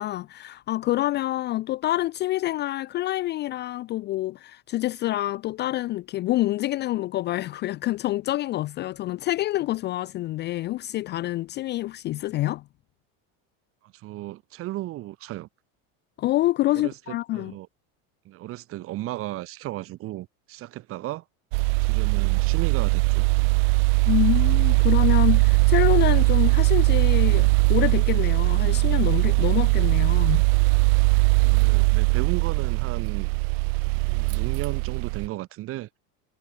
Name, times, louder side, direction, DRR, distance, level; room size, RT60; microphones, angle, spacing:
voice 1, 0.0-12.6 16.2-17.5 24.1-30.4, left 16 dB, 25° left, 0.5 m, -27 dB
voice 2, 13.8-15.5 16.8-16.9 17.3-17.7 18.2-21.2 21.8-23.3 31.4-33.3 34.0-35.9, right 16 dB, 35° right, 1.1 m, -35 dB
sound 1, 21.5-35.3, right 30 dB, 70° right, 1.2 m, -20 dB
cardioid pair, 170°, 40 cm